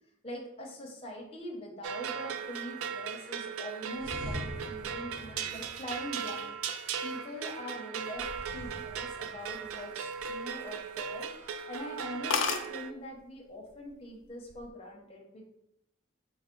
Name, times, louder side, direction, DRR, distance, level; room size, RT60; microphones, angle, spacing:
voice 1, 0.2-8.2 8.5-15.5, equal, 30° left, 0 dB, 0.6 m, -43 dB
sound 1, 1.8-12.9, right 7 dB, 90° right, 0.3 m, -38 dB
sound 2, 3.9-6.6 8.1-9.9, equal, 60° right, 0.7 m, -44 dB
sound 3, 9.8-10.8 11.2-11.4 11.8-11.9 12.0-12.1 12.3-12.7 13.6-13.9 14.2-14.7, left 6 dB, 65° left, 0.4 m, -32 dB
4.5 x 2.0 x 3.7 m, 0.81 s
head